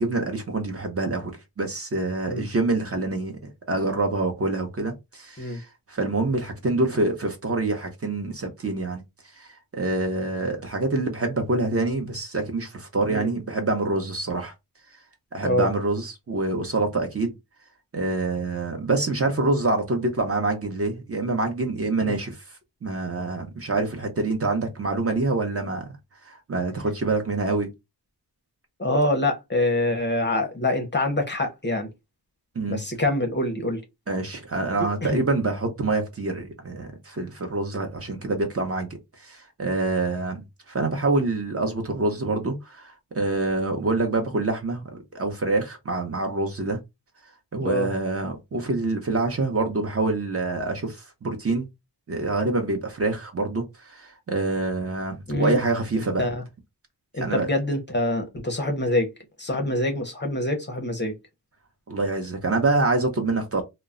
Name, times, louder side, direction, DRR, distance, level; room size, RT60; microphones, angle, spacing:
voice 1, 0.0-3.4 3.7-9.0 9.4-14.5 15.3-17.3 17.9-22.4 22.8-25.9 26.2-27.7 32.5-32.8 34.1-46.8 47.5-51.7 52.1-56.3 57.2-57.5 61.9-63.6, right 2 dB, 35° right, 0.6 m, -26 dB
voice 2, 28.8-31.9 32.7-33.8 34.8-35.2 47.6-47.9 55.3-55.6 56.2-56.4 57.1-59.1 59.4-61.1, left 1 dB, 25° left, 0.5 m, -25 dB
2.2 x 2.0 x 3.6 m
wide cardioid pair, 135°, 40 cm